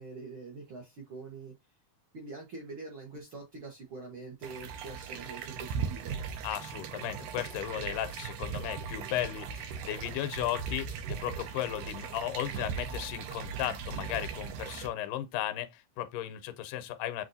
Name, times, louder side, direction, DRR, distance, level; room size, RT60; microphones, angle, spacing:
voice 1, 0.0-1.5 2.1-6.2, right 3 dB, 65° right, 1.3 m, -44 dB
sound 1, 4.4-14.9, right 6 dB, 80° right, 2.2 m, -38 dB
voice 2, 6.4-17.2, left 12 dB, 85° left, 2.2 m, -35 dB
7.7 x 2.6 x 2.6 m
omnidirectional pair, 3.7 m